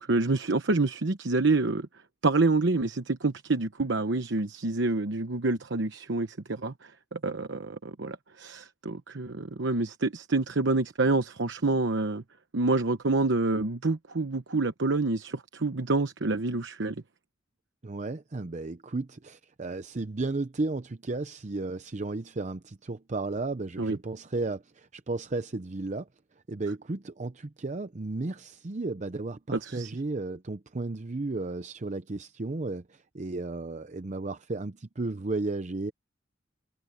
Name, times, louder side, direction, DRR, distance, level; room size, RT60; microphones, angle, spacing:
voice 1, 0.0-1.9 2.2-6.7 7.1-12.2 12.5-16.9 23.8-24.0 29.5-29.9, right 3 dB, 80° right, 1.0 m, -27 dB
voice 2, 17.8-26.1 26.5-35.9, right 3 dB, 40° right, 0.6 m, -34 dB
head